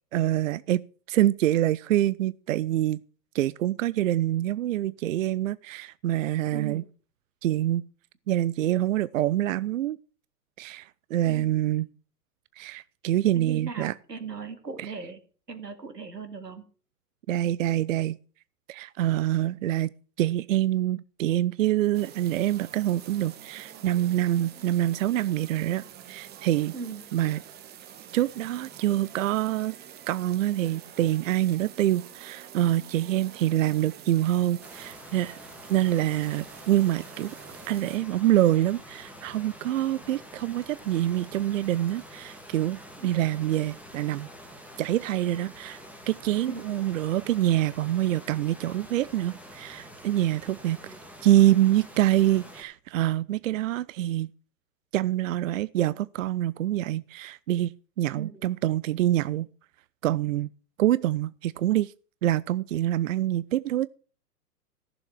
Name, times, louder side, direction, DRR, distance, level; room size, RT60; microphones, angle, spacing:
voice 1, 0.1-3.0 3.3-6.8 7.4-7.8 8.3-10.0 10.6-11.9 12.6-13.9 14.8-14.9 17.3-18.2 18.7-19.9 20.2-26.7 27.1-27.4 28.1-29.7 30.1-35.4 35.7-37.3 37.7-44.3 44.8-50.8 51.2-54.3 54.9-59.5 60.0-60.5 60.8-61.9 62.2-63.9, right 13 dB, 55° right, 0.5 m, -26 dB
voice 2, 13.4-15.2 15.5-16.6 26.7-27.0 43.0-43.1 46.5-46.7 50.9-51.0 58.2-58.5, right 5 dB, 90° right, 2.2 m, -38 dB
sound 1, 21.9-38.0, right 9 dB, 20° right, 1.1 m, -47 dB
sound 2, 34.6-52.6, equal, 5° right, 2.3 m, -47 dB
15.0 x 7.0 x 6.2 m
figure-of-eight pair, 115°, 48 cm